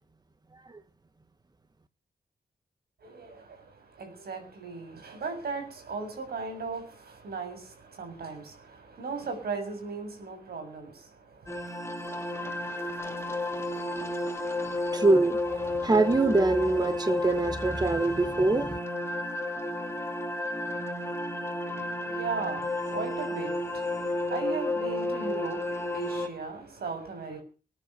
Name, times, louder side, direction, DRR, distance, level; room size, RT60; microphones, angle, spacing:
voice 1, 3.0-11.7 21.7-27.4, right 4 dB, 85° right, 7.0 m, -37 dB
sound 1, 11.5-26.3, left 1 dB, 15° left, 2.6 m, -32 dB
voice 2, 14.9-15.4 15.6-18.8, right 2 dB, 25° right, 1.4 m, -24 dB
20.5 x 10.0 x 6.7 m
cardioid pair, 70°, 16 cm